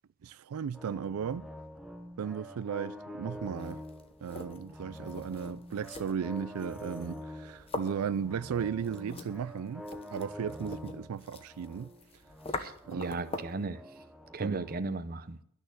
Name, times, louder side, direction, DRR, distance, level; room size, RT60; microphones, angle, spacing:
voice 1, 0.2-1.5 2.2-3.8 4.2-11.9 12.9-13.4 14.4-14.7, right 7 dB, 90° right, 0.4 m, -36 dB
sound 1, 0.7-14.8, equal, ahead, 0.8 m, -46 dB
sound 2, 3.5-13.7, left 2 dB, 25° left, 1.0 m, -44 dB
voice 2, 12.6-13.8 14.3-15.4, right 3 dB, 40° right, 0.7 m, -35 dB
13.0 x 6.6 x 8.1 m
head